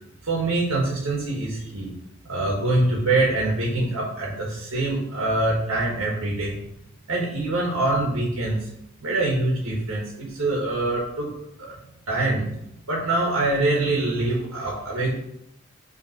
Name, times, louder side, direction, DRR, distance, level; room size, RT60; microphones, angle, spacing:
voice 1, 0.2-1.9 2.2-6.6 7.1-8.7 9.0-11.3 11.6-11.7 12.1-12.6 12.9-15.2, right 2 dB, 80° right, -3 dB, 1.4 m, -24 dB
5.5 x 3.4 x 5.7 m, 0.77 s
head